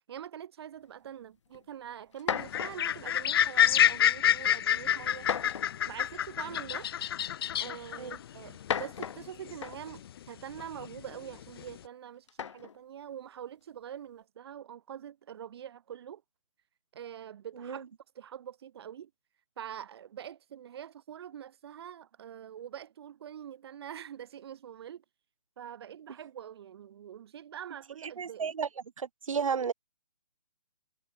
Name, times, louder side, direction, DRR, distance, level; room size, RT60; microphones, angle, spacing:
voice 1, 0.1-5.3 5.9-6.9 7.6-16.2 16.9-17.9 18.2-19.1 19.6-25.0 25.6-28.5, right 9 dB, 45° right, 5.1 m, -44 dB
sound 1, 1.5-1.6 2.1-2.9 3.8-4.2 5.2-5.9 7.0-7.1 8.5-10.0 12.3-12.8, left 7 dB, 60° left, 1.6 m, -36 dB
sound 2, 2.4-10.2 10.5-11.8, left 10 dB, 45° left, 1.5 m, -28 dB
voice 2, 28.0-28.7 29.0-29.7, right 6 dB, 70° right, 1.6 m, -33 dB
hypercardioid pair, 150°, 18 cm